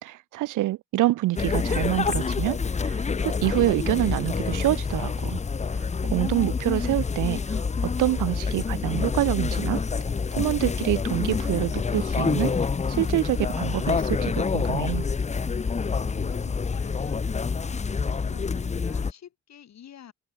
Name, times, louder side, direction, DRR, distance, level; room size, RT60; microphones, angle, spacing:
voice 1, 0.0-5.4 5.7-9.8 10.4-12.5 12.9-15.1, right 16 dB, 85° right, 1.2 m, -26 dB
sound 1, 1.3-19.1, left 5 dB, 25° left, 0.8 m, -27 dB
voice 2, 16.1-17.8 18.2-20.1, left 9 dB, 60° left, 5.0 m, -47 dB
open air
cardioid pair, 90°, 30 cm